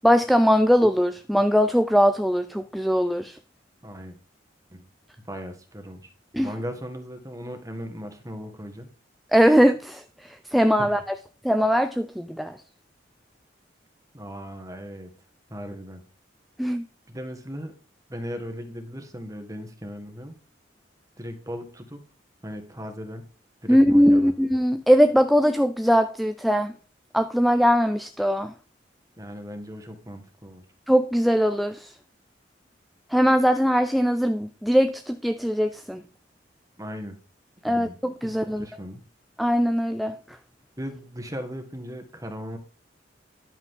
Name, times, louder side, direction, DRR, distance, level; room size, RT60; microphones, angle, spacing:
voice 1, 0.0-3.4 6.3-6.5 9.3-10.0 10.5-11.2 11.4-12.6 16.6-16.8 23.7-26.7 27.1-28.5 30.9-31.9 33.1-36.0 37.6-38.6 39.4-40.1, equal, ahead, 0.4 m, -20 dB
voice 2, 3.8-4.2 4.7-4.9 5.3-6.1 6.4-8.9 10.8-10.9 14.1-15.1 15.5-16.0 17.1-17.7 18.1-20.3 21.2-22.0 22.4-23.2 23.6-24.3 29.2-30.6 36.8-37.2 37.7-38.0 38.2-39.0 40.8-42.6, equal, 20° right, 1.7 m, -37 dB
11.0 x 8.1 x 3.8 m
head